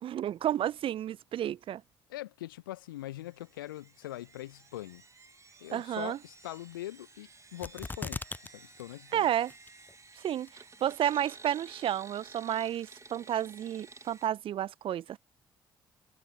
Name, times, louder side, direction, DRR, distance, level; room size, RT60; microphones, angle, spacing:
voice 1, 0.0-1.8 5.7-6.2 9.1-9.5 10.2-15.2, right 11 dB, 55° right, 1.0 m, -31 dB
voice 2, 2.1-5.0 5.6-9.3, left 15 dB, 75° left, 1.4 m, -42 dB
sound 1, 3.1-14.3, right 3 dB, 25° right, 2.7 m, -54 dB
sound 2, 7.6-8.5 8.8-8.9 9.5-9.9 10.5-10.6, left 3 dB, 15° left, 0.7 m, -38 dB
figure-of-eight pair, 40°, 11 cm